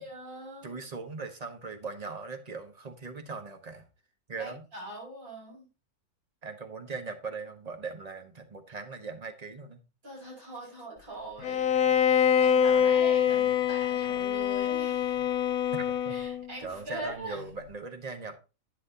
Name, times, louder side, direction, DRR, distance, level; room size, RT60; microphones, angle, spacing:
voice 1, 0.0-0.8 4.3-5.7 10.0-15.2 16.1-17.4, right 1 dB, 90° right, -3 dB, 6.6 m, -42 dB
voice 2, 0.6-3.9 4.3-4.6 6.4-9.8 15.7-16.2 16.6-18.4, right 4 dB, 30° right, 7 dB, 1.2 m, -39 dB
Bowed string instrument, 11.4-16.5, left 8 dB, 85° left, 1.2 m, -25 dB
11.5 x 9.1 x 2.8 m, 0.31 s
omnidirectional pair, 1.5 m